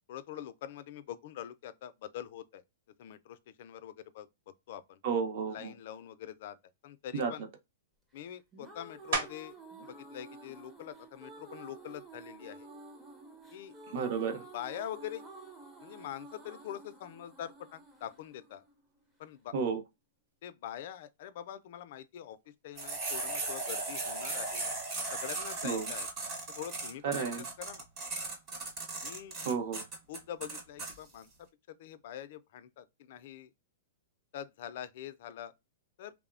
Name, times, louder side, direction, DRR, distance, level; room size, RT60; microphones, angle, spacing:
voice 1, 0.1-2.6 3.0-4.3 4.7-5.0 5.5-6.6 6.8-7.5 8.1-9.6 9.8-12.7 13.5-13.7 14.5-15.2 15.8-18.6 19.2-19.5 20.4-22.4 22.6-24.7 25.1-26.1 26.5-27.8 29.0-29.3 30.1-31.3 31.7-33.5 34.3-35.5 36.0-36.1, left 11 dB, 50° left, 0.3 m, -44 dB
voice 2, 5.0-5.7 7.1-7.3 13.9-14.4 19.5-19.8 25.6-25.9 27.0-27.4 29.4-29.8, right 6 dB, 50° right, 0.6 m, -32 dB
sound 1, 8.3-19.3, right 3 dB, 10° right, 0.5 m, -51 dB
sound 2, 9.1-9.7 10.3-14.7 15.2-20.4 20.7-26.3, right 3 dB, 75° right, 1.1 m, -45 dB
sound 3, 22.8-30.9, right 3 dB, 30° right, 1.0 m, -37 dB
2.9 x 2.0 x 2.4 m
hypercardioid pair, 160°, 0 cm